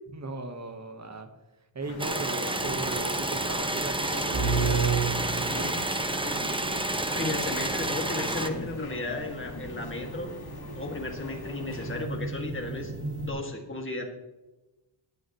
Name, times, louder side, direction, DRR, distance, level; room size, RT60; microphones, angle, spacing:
voice 1, 0.1-1.3 1.7-5.7, right 2 dB, 35° right, 6 dB, 1.4 m, -38 dB
sound 1, 1.8-12.1, left 2 dB, 50° left, 2.1 m, -42 dB
sound 2, 2.0-8.5, right 2 dB, 10° right, 0.8 m, -30 dB
sound 3, 2.6-13.3, right 4 dB, 55° right, 2.2 m, -34 dB
voice 2, 7.1-10.4 10.7-12.9 13.2-14.0, left 2 dB, 25° left, 1 dB, 2.1 m, -34 dB
17.5 x 9.9 x 3.1 m, 1.1 s
wide cardioid pair, 150°, 48 cm